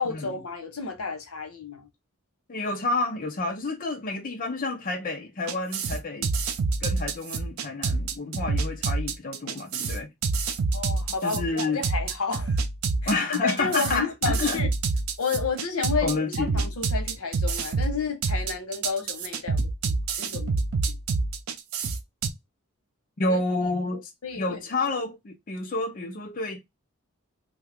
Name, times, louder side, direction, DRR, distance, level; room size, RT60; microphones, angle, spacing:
voice 1, 0.0-1.9 10.7-12.6 13.0-14.7 15.2-20.6 20.9-21.0 23.3-23.4 24.2-24.6, left 5 dB, 85° left, 0.9 m, -31 dB
voice 2, 2.5-6.3 6.8-10.1 11.2-11.8 13.1-14.6 16.0-16.6 23.2-24.1 24.4-26.6, left 3 dB, 40° left, 0.5 m, -29 dB
sound 1, 5.5-22.3, right 4 dB, 75° right, 0.5 m, -27 dB
2.8 x 2.3 x 3.4 m
head